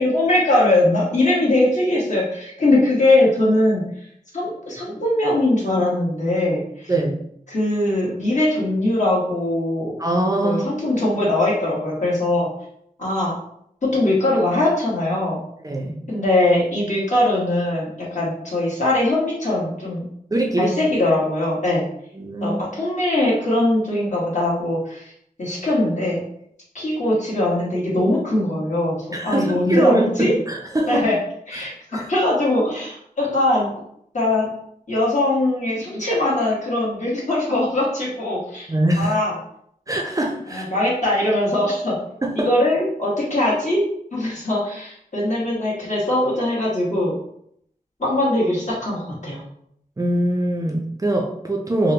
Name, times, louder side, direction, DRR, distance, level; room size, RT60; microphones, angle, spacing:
voice 1, 0.0-3.8 4.3-6.9 7.5-9.9 10.4-12.5 13.0-13.3 13.8-15.4 16.1-20.1 20.6-21.8 22.4-25.1 25.4-26.2 26.7-30.3 30.9-31.2 31.5-33.7 34.1-34.5 34.9-38.7 39.0-39.3 40.5-42.0 42.4-47.2 48.0-49.4, left 1 dB, 50° left, -5 dB, 1.3 m, -21 dB
voice 2, 6.9-7.2 10.0-10.7 15.6-16.0 20.3-20.7 22.1-22.6 29.1-31.1 31.5-31.7 31.9-32.1 38.7-39.1 39.9-40.7 42.2-42.5 50.0-51.9, right 1 dB, 25° right, 0 dB, 0.4 m, -22 dB
3.6 x 2.0 x 2.8 m, 0.72 s
wide cardioid pair, 65°, 15 cm